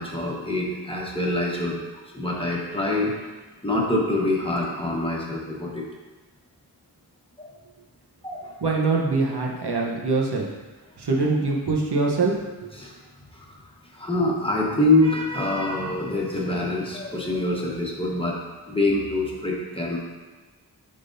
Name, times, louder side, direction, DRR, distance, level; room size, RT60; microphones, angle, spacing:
voice 1, 0.0-1.8 2.1-3.1 3.6-5.9 7.4-7.5 8.2-8.5 12.7-12.9 13.3-13.6 13.9-18.4 18.7-20.0, left 2 dB, 15° left, -3 dB, 1.2 m, -25 dB
voice 2, 8.6-10.4 11.0-12.3, right 3 dB, 75° right, -1 dB, 1.0 m, -23 dB
10.0 x 3.7 x 2.6 m, 1.2 s
wide cardioid pair, 70°, 40 cm